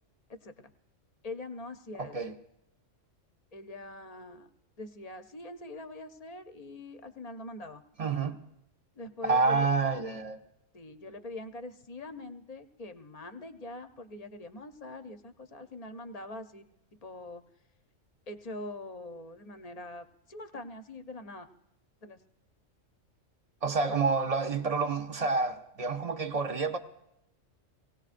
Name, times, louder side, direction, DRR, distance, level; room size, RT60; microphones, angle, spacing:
voice 1, 0.3-0.7 1.2-2.2 3.5-4.5 4.8-7.8 9.0-9.7 10.7-16.7 17.0-17.4 18.3-21.5 22.0-22.2, left 2 dB, 45° left, 0.5 m, -43 dB
voice 2, 2.0-2.3 8.0-8.4 9.2-10.4 23.6-26.8, right 4 dB, 45° right, 0.4 m, -28 dB
24.0 x 17.5 x 2.5 m
omnidirectional pair, 1.3 m